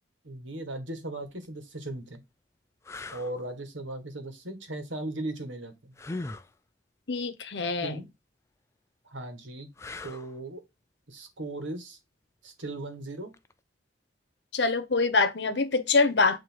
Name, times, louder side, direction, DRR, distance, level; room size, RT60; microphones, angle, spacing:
voice 1, 0.2-2.2 3.1-5.9 7.8-8.1 9.0-9.7 10.0-10.6 11.1-12.0 12.4-13.3, right 2 dB, 85° right, 1.6 m, -37 dB
sound 1, 1.3-1.5 2.1-2.2 2.8-3.3 6.0-6.5 9.8-10.4 13.3-13.5, left 2 dB, 15° left, 0.3 m, -39 dB
voice 2, 7.1-8.0 14.5-16.4, left 4 dB, 65° left, 0.9 m, -25 dB
7.8 x 3.0 x 4.5 m
head